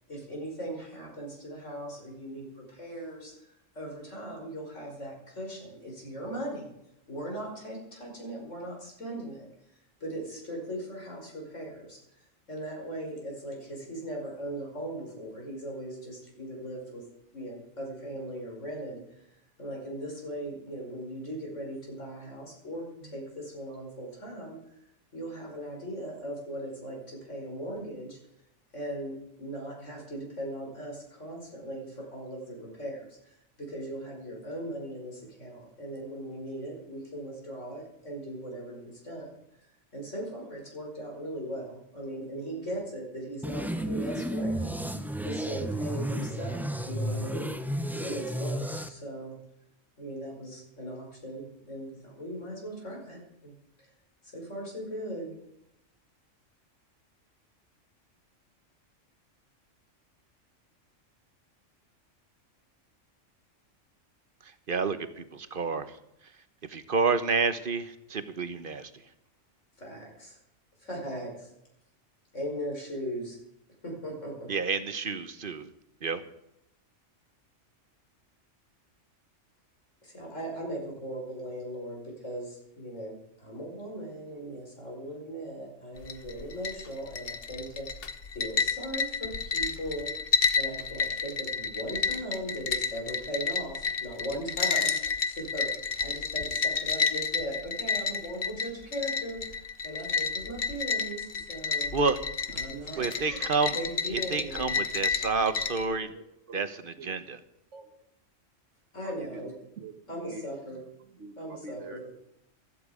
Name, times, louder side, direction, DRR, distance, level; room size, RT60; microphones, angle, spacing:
voice 1, 0.1-6.7 7.1-9.5 10.0-12.0 12.5-17.0 17.3-19.2 19.6-24.7 25.1-28.2 28.7-39.3 39.9-44.7 45.2-47.5 48.0-49.3 50.0-53.5 54.3-55.3 69.8-70.4 70.8-71.5 72.3-73.4 73.8-74.5 80.0-88.0 88.3-90.1 90.6-101.9 102.5-103.4 103.7-104.8 108.9-109.5 110.1-110.8 111.4-112.1, right 1 dB, 70° left, 0 dB, 5.6 m, -39 dB
sound 1, 43.4-48.9, equal, ahead, 0.7 m, -32 dB
voice 2, 64.7-65.9 66.7-68.9 74.5-75.7 76.0-76.2 101.9-102.2 103.0-103.8 104.1-106.1 106.5-106.7 107.0-107.4, right 4 dB, 45° right, 12 dB, 1.1 m, -29 dB
sound 2, 86.0-105.9, left 5 dB, 50° left, 1.2 m, -31 dB
voice 3, 104.5-104.8 105.7-106.7 107.0-107.1 107.7-108.1 109.0-109.5 109.8-112.1, right 4 dB, 70° right, 7 dB, 1.6 m, -47 dB
15.5 x 14.0 x 5.0 m, 0.81 s
omnidirectional pair, 1.3 m